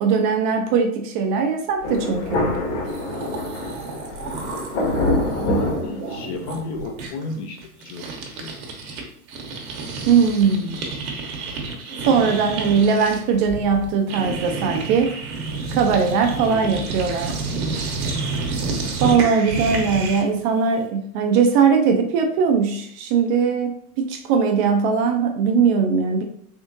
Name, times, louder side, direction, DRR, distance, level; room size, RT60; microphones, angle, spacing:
voice 1, 0.0-2.5 10.1-10.8 12.1-15.2 15.7-17.4 19.0-26.2, right 6 dB, 35° right, 5 dB, 0.4 m, -20 dB
Thunder, 1.8-6.6, left 1 dB, 55° left, 1.5 m, -26 dB
sound 1, 2.5-2.6 2.8-9.0 9.3-20.4, right 3 dB, 65° right, 1.1 m, -30 dB
voice 2, 5.3-8.6 16.5-16.8, left 3 dB, 30° left, 4 dB, 0.4 m, -33 dB
3.7 x 3.4 x 2.6 m, 0.66 s
hypercardioid pair, 125°, 45 cm